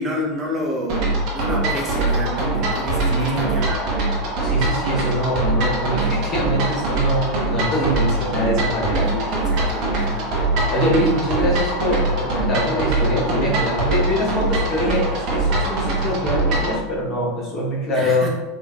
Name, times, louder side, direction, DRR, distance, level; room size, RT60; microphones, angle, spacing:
voice 1, 0.0-3.8 9.0-10.3 17.9-18.3, left 1 dB, 20° right, -3 dB, 0.8 m, -29 dB
sound 1, 0.9-16.8, right 2 dB, 55° right, 0.7 m, -22 dB
voice 2, 3.1-3.5 4.4-9.4 10.7-18.3, left 1 dB, 35° left, -5 dB, 0.9 m, -24 dB
3.2 x 2.4 x 2.2 m, 1.1 s
hypercardioid pair, 95°, 0 cm